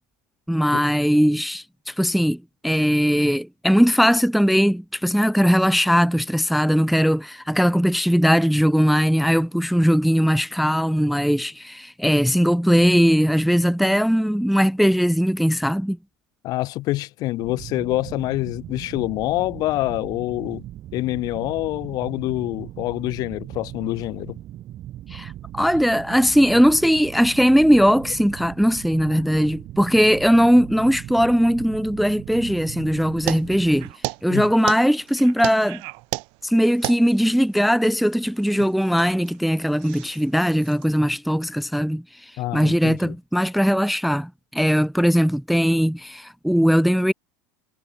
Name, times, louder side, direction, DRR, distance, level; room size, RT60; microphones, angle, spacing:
voice 1, 0.5-16.0 25.1-33.9 34.2-35.8 36.4-47.1, equal, ahead, 0.5 m, -19 dB
voice 2, 16.4-20.6 20.9-24.4 29.1-29.2 34.3-34.5 42.4-43.1, left 18 dB, 50° left, 2.0 m, -26 dB
sound 1, 17.4-33.9, right 13 dB, 45° right, 7.2 m, -38 dB
sound 2, 33.3-41.0, right 36 dB, 65° right, 1.7 m, -34 dB
supercardioid pair, 125°, 8 cm